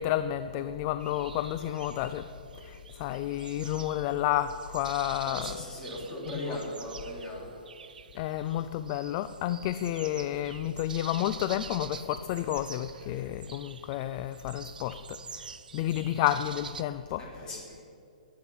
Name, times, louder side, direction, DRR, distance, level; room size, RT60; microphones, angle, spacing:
voice 1, 0.0-2.3 2.6-5.6 6.3-6.6 8.1-17.2, left 12 dB, 35° left, 12 dB, 0.4 m, -31 dB
sound 1, 1.0-16.8, right 6 dB, 90° right, 0.8 m, -47 dB
voice 2, 5.2-7.5 17.2-17.8, left 1 dB, 20° left, -4 dB, 3.7 m, -39 dB
20.0 x 8.6 x 5.7 m, 2.5 s
hypercardioid pair, 150°, 5 cm